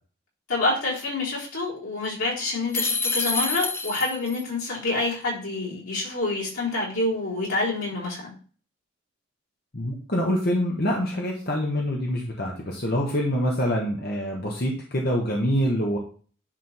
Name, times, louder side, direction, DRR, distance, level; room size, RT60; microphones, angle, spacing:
voice 1, 0.5-8.3, left 2 dB, 85° left, -5 dB, 4.3 m, -27 dB
sound 1, 2.7-4.4, left 4 dB, 10° left, 0.4 m, -27 dB
voice 2, 9.7-16.0, equal, 45° left, -1 dB, 1.3 m, -25 dB
10.0 x 3.7 x 4.5 m, 0.41 s
head